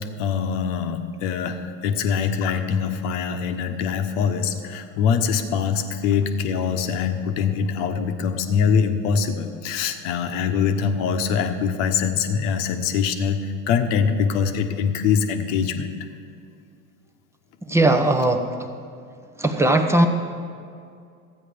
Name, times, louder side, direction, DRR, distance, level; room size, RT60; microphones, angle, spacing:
voice 1, 0.2-15.9, left 6 dB, 55° left, 6 dB, 1.1 m, -23 dB
voice 2, 17.6-18.5 19.4-20.1, right 2 dB, 5° right, 6 dB, 0.8 m, -18 dB
13.0 x 9.1 x 5.1 m, 2.4 s
hypercardioid pair, 90°, 46 cm